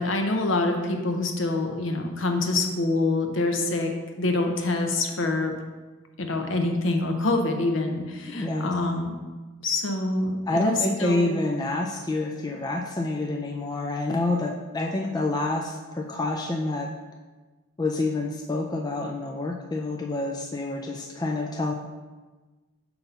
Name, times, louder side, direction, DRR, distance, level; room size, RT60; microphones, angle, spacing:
voice 1, 0.0-5.5 6.2-9.1 9.6-11.3, left 2 dB, 65° left, 4 dB, 0.8 m, -26 dB
voice 2, 8.3-8.7 10.5-16.9 17.8-21.7, left 2 dB, 20° left, 1 dB, 0.3 m, -27 dB
7.7 x 2.9 x 5.5 m, 1.3 s
head